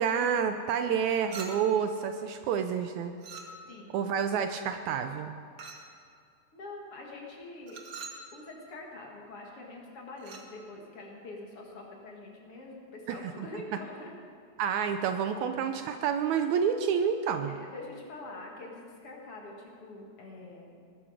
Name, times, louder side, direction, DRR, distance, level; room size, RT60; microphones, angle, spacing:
voice 1, 0.0-3.1 3.9-5.3 13.1-13.5 14.6-17.5, right 7 dB, 75° right, 8 dB, 1.8 m, -29 dB
Chink clink, 1.3-1.9 3.2-3.9 5.6-6.0 7.7-8.3 10.2-10.5, right 4 dB, 60° right, 1.0 m, -44 dB
voice 2, 3.6-4.0 6.5-7.8 8.3-14.1 17.3-20.8, left 2 dB, 50° left, -1 dB, 2.5 m, -45 dB
19.0 x 12.5 x 5.0 m, 2.3 s
omnidirectional pair, 3.6 m